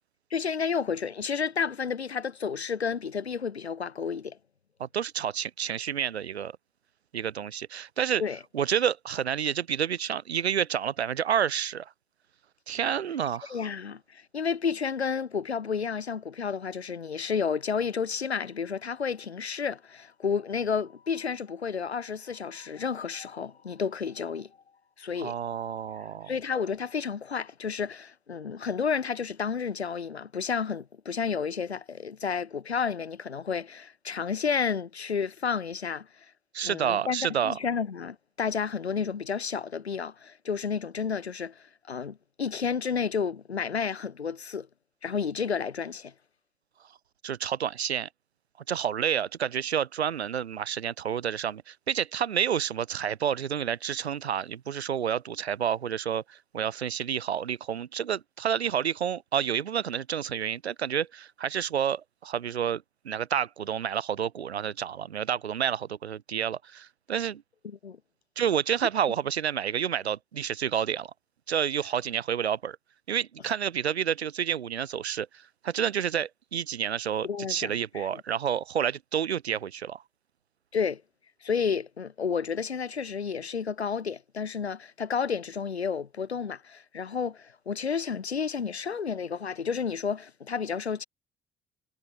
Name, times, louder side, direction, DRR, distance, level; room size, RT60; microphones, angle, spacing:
voice 1, 0.3-4.4 8.2-8.4 13.5-24.5 25.0-25.4 26.3-36.1 36.6-44.7 45.0-46.1 67.6-68.0 77.2-78.2 80.7-81.0 81.4-91.0, left 6 dB, 90° left, 2.3 m, -31 dB
voice 2, 4.8-6.5 7.1-8.2 8.5-11.9 12.7-13.6 25.2-26.3 36.5-37.6 47.2-48.1 48.7-67.4 68.4-71.1 71.5-72.8 73.1-80.0, right 8 dB, 85° right, 2.4 m, -29 dB
figure-of-eight pair, 50°, 31 cm